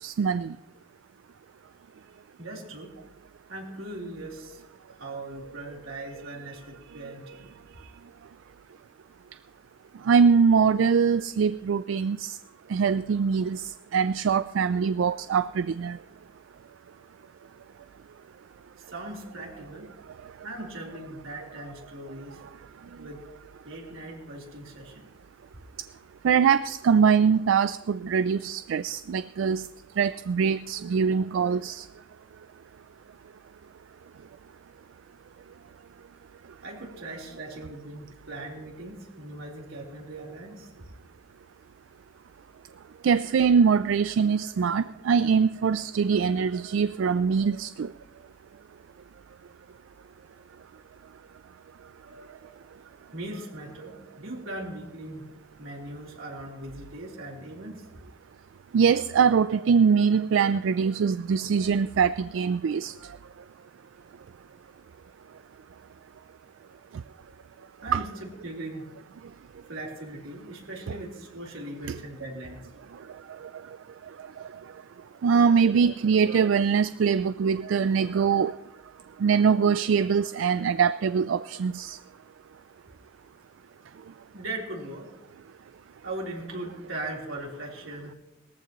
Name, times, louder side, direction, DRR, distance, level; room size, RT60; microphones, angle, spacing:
voice 1, 0.0-0.6 10.0-12.4 12.7-16.0 26.2-29.7 30.0-31.9 43.0-47.9 58.7-63.2 67.9-68.0 71.9-72.0 73.4-73.5 75.2-78.6 79.2-82.0, right 6 dB, 70° right, 13 dB, 0.3 m, -23 dB
voice 2, 2.4-2.9 3.5-4.6 5.0-7.9 18.9-19.9 20.4-22.4 23.0-23.2 23.6-25.1 36.6-40.9 52.0-52.6 53.1-55.2 55.6-57.9 67.8-68.8 69.7-72.6 84.3-85.1 86.0-88.1, right 1 dB, 90° right, -2 dB, 3.8 m, -39 dB
20.5 x 14.5 x 3.1 m, 0.97 s
head